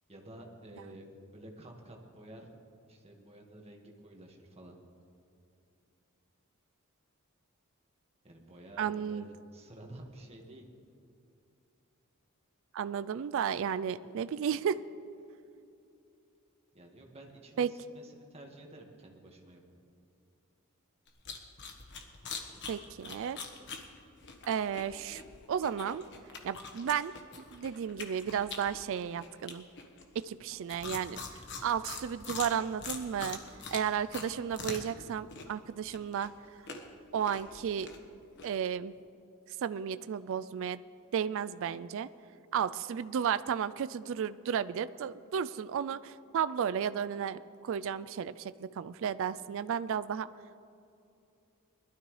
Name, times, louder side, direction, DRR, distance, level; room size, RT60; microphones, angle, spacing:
voice 1, 0.1-2.5 2.9-4.8 8.2-9.3 9.5-10.7 16.7-19.6, right 1 dB, 30° right, 1 dB, 1.6 m, -51 dB
voice 2, 8.8-9.3 12.7-14.8 17.6-17.7 22.7-23.4 24.5-25.2 25.5-26.1 26.4-27.1 27.5-29.7 30.2-31.2 31.6-33.4 33.7-36.3 37.1-37.9 38.4-38.9 39.6-40.8 41.1-42.1 42.5-50.3, right 8 dB, 60° right, 15 dB, 0.3 m, -33 dB
sound 1, 21.1-35.0 35.3-38.5, left 4 dB, 55° left, 1.3 m, -44 dB
21.0 x 12.5 x 3.2 m, 2.6 s
head